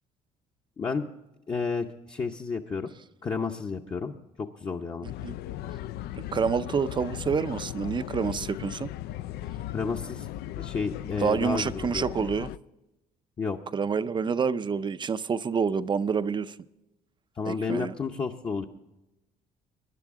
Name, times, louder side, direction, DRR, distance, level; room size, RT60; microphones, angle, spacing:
voice 1, 0.8-1.1 1.5-2.9 3.2-5.1 9.7-10.3 10.6-12.1 13.4-13.6 17.4-18.7, left 5 dB, 30° left, 0 dB, 0.8 m, -31 dB
sound 1, 5.0-12.6, left 13 dB, 75° left, 0.4 m, -37 dB
voice 2, 6.1-8.9 11.2-12.5 13.7-16.6 17.5-17.9, right 6 dB, 30° right, 14 dB, 0.5 m, -28 dB
19.0 x 10.5 x 3.7 m, 0.94 s
cardioid pair, 110°, 17 cm